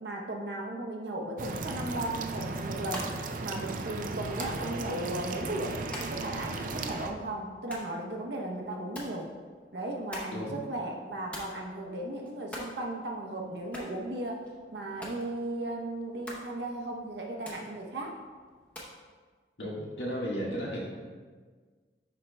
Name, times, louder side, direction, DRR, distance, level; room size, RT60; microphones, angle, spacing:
voice 1, 0.0-3.1 3.4-9.3 9.7-14.4 14.7-18.2, right 1 dB, 70° right, 1 dB, 0.8 m, -36 dB
sound 1, 1.4-7.1, right 3 dB, 45° right, 0.4 m, -36 dB
sound 2, 2.7-19.0, equal, 5° left, 0.8 m, -48 dB
voice 2, 19.6-20.8, equal, 75° left, -4 dB, 1.5 m, -34 dB
10.0 x 4.4 x 2.2 m, 1.5 s
head